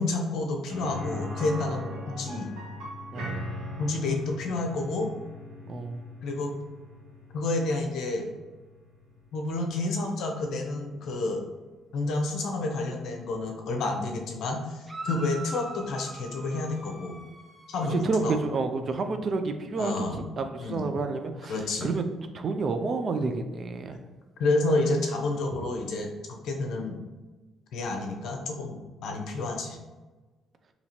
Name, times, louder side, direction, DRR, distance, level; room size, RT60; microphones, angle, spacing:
voice 1, 0.0-2.5 3.8-5.1 6.2-6.6 7.3-8.3 9.3-11.4 11.9-17.2 17.7-18.4 19.8-20.2 20.6-21.0 21.5-21.9 24.4-27.0 27.7-29.8, left 2 dB, 70° left, 3 dB, 0.6 m, -29 dB
sound 1, 0.7-10.5 10.8-10.9 13.3-13.4, left 1 dB, 75° right, 1.3 m, -40 dB
voice 2, 3.1-3.5 5.7-6.0 17.9-22.0 22.3-24.0, right 3 dB, 50° right, 7 dB, 0.4 m, -30 dB
sound 2, 14.9-18.1, right 1 dB, 20° right, 0.7 m, -42 dB
2.8 x 2.7 x 4.2 m, 1.2 s
supercardioid pair, 75°, 0 cm